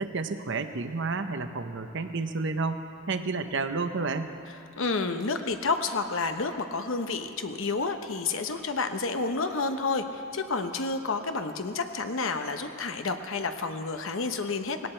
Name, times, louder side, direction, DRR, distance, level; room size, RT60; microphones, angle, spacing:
voice 1, 0.0-4.3, right 4 dB, 60° right, 8 dB, 0.8 m, -31 dB
voice 2, 4.8-14.9, left 4 dB, 70° left, 7 dB, 0.9 m, -30 dB
18.0 x 17.5 x 4.5 m, 2.6 s
head